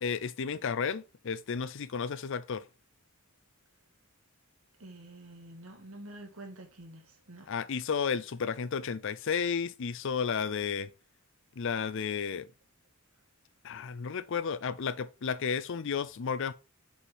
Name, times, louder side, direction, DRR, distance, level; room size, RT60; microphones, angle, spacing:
voice 1, 0.0-2.6 7.5-10.9 11.6-12.5 13.6-16.5, left 6 dB, 65° left, 0.5 m, -32 dB
voice 2, 4.8-7.5, right 1 dB, 90° right, 1.9 m, -48 dB
6.6 x 5.1 x 3.5 m
head